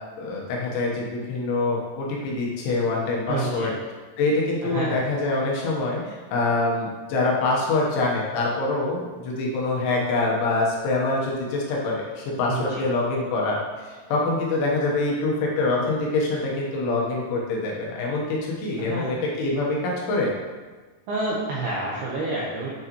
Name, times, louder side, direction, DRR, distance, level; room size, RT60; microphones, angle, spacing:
voice 1, 0.2-3.7 4.2-20.3, left 2 dB, 75° left, -3 dB, 3.3 m, -25 dB
voice 2, 3.3-3.7 4.6-5.0 12.5-12.8 18.8-19.2 21.1-22.7, right 2 dB, 80° right, -6 dB, 2.2 m, -28 dB
9.3 x 6.4 x 3.0 m, 1.3 s
omnidirectional pair, 5.9 m